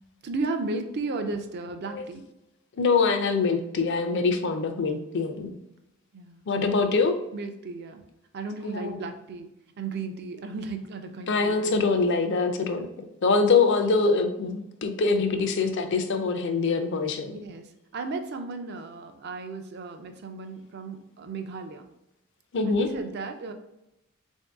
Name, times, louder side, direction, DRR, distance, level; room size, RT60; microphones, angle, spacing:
voice 1, 0.2-2.3 6.1-6.9 7.3-8.0 8.3-9.5 9.8-11.8 12.7-12.8 17.3-21.9 22.7-23.5, right 3 dB, 50° right, 6 dB, 0.4 m, -35 dB
voice 2, 2.8-5.6 6.5-7.1 8.6-9.0 11.3-12.9 13.2-17.3 22.5-22.9, left 4 dB, 55° left, 6 dB, 0.5 m, -24 dB
3.7 x 2.7 x 3.4 m, 0.88 s
head